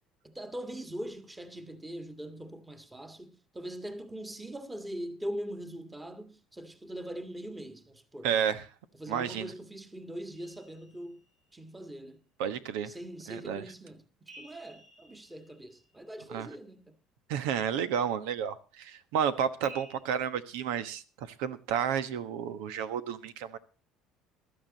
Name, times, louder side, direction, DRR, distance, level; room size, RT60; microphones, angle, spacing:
voice 1, 0.2-8.3 9.0-11.2 11.5-12.3 12.8-17.0, right 1 dB, 10° right, 1.7 m, -42 dB
voice 2, 8.2-8.6 9.1-9.5 12.4-12.9 13.3-13.6 16.3-16.5 17.3-23.6, right 8 dB, 90° right, 1.3 m, -31 dB
sound 1, 10.3-11.6 14.3-16.3 19.6-19.9, right 2 dB, 45° right, 6.6 m, -53 dB
15.5 x 12.5 x 4.1 m
cardioid pair, 110°, 0 cm